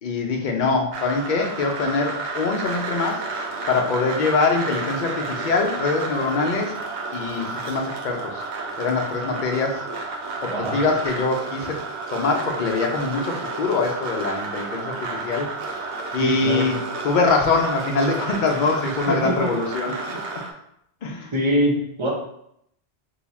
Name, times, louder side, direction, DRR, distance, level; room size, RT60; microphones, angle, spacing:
voice 1, 0.0-3.3 3.7-6.8 7.1-8.4 8.8-9.9 10.4-11.8 12.1-15.5 16.1-20.0 21.0-21.3, left 4 dB, 55° left, 2 dB, 0.6 m, -23 dB
sound 1, 0.9-20.5, right 3 dB, 90° right, 0.9 m, -31 dB
voice 2, 10.5-10.8 16.2-16.6 19.1-19.5 21.3-22.1, equal, 30° right, -2 dB, 0.7 m, -23 dB
2.7 x 2.3 x 4.1 m, 0.74 s
omnidirectional pair, 1.1 m